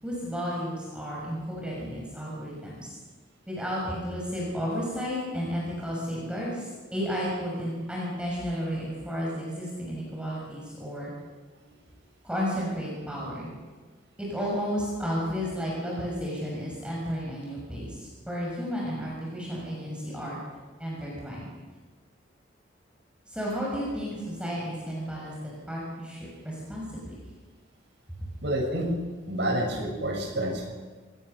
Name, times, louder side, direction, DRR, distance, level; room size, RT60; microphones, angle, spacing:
voice 1, 0.0-2.9 3.5-11.1 12.2-13.5 14.2-20.4 20.8-21.5 23.3-27.1 28.2-28.3, equal, 5° right, -4 dB, 6.4 m, -32 dB
voice 2, 28.4-28.9 29.3-30.7, right 1 dB, 65° right, 0 dB, 7.6 m, -28 dB
29.0 x 17.5 x 6.8 m, 1.4 s
head